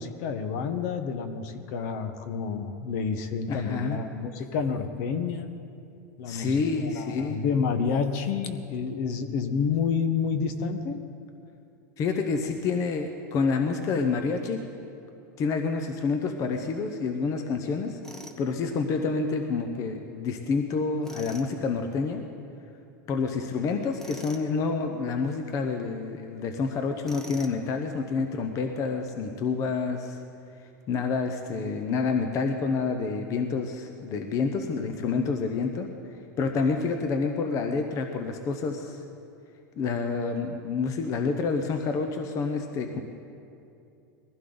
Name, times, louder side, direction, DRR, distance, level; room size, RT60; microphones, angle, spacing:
voice 1, 0.0-5.5 6.2-11.0, left 6 dB, 55° left, 8 dB, 1.2 m, -29 dB
voice 2, 3.5-4.0 6.3-7.4 12.0-14.6 15.4-18.0 18.4-22.2 23.1-30.2 30.9-35.9 36.4-39.0 39.8-43.0, left 4 dB, 30° left, 6 dB, 0.9 m, -28 dB
Tools, 18.0-18.4 21.0-21.5 24.0-24.5 27.0-27.6, equal, 5° left, 1.0 m, -43 dB
21.0 x 15.5 x 4.0 m, 2.7 s
supercardioid pair, 150°, 11 cm